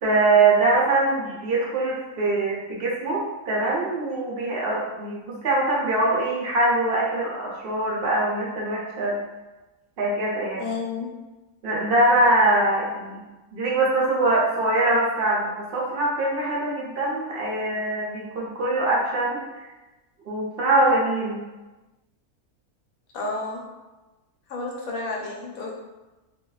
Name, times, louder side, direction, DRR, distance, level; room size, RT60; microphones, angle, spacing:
voice 1, 0.0-9.2 10.0-10.6 11.6-13.2 13.5-19.7 20.3-21.4, right 2 dB, 55° right, -4 dB, 0.7 m, -23 dB
voice 2, 10.6-11.1 23.1-23.6 24.5-25.7, left 3 dB, 75° left, -3 dB, 1.0 m, -31 dB
2.5 x 2.2 x 2.2 m, 1.1 s
omnidirectional pair, 1.5 m